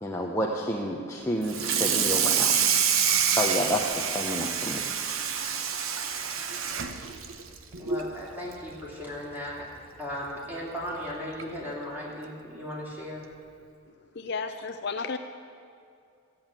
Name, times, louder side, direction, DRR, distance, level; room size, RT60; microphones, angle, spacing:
voice 1, 0.0-2.6 3.3-4.8, equal, 10° left, -1 dB, 0.8 m, -30 dB
Water tap faucet / Sink (filling or washing), 1.4-8.1 8.5-8.7 9.1-9.2 9.6-9.7 10.8-10.9 11.4-11.6, right 7 dB, 75° right, 0.9 m, -27 dB
voice 2, 7.8-9.7 10.0-13.2, left 1 dB, 10° right, -4 dB, 2.7 m, -36 dB
voice 3, 14.1-15.2, left 4 dB, 50° left, 7 dB, 0.5 m, -32 dB
14.0 x 7.9 x 8.9 m, 2.4 s
head